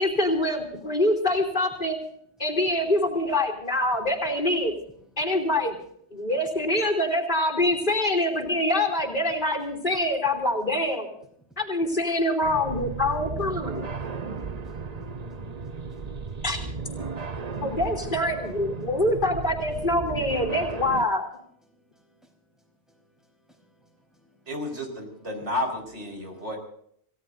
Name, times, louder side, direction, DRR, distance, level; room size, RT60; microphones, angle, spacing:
voice 1, 0.0-2.0 2.4-4.7 5.2-5.8 6.1-11.1 11.6-13.9 16.4-16.6 17.6-21.3, left 1 dB, 45° left, 3.3 m, -25 dB
sound 1, 12.4-21.1, right 5 dB, 40° right, 0.9 m, -35 dB
voice 2, 13.9-16.4 17.2-17.6 21.7-24.5 25.2-25.3 26.1-26.4, equal, ahead, 4.5 m, -61 dB
voice 3, 24.5-26.6, left 1 dB, 75° right, 5.3 m, -31 dB
27.5 x 17.0 x 2.7 m
omnidirectional pair, 1.2 m